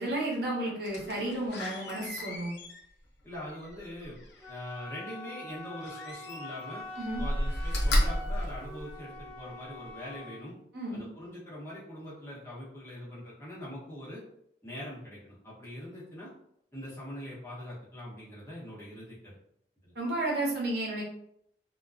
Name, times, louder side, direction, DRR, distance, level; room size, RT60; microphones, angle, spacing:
voice 1, 0.0-2.5 7.0-7.2 10.7-11.0 19.9-21.0, right 1 dB, 70° right, -3 dB, 0.9 m, -32 dB
Slam, 0.8-4.7 5.8-6.7 7.1-9.4 9.9-10.0, equal, 80° left, 0.6 m, -33 dB
voice 2, 3.2-4.2 4.5-6.8 7.2-10.5 10.9-14.2 14.6-16.3 16.7-19.3 19.8-19.9, left 1 dB, 15° left, -9 dB, 1.0 m, -43 dB
Wind instrument woodwind instrument, 4.4-10.5, left 1 dB, 15° right, 0.7 m, -44 dB
2.3 x 2.2 x 2.5 m, 0.72 s
head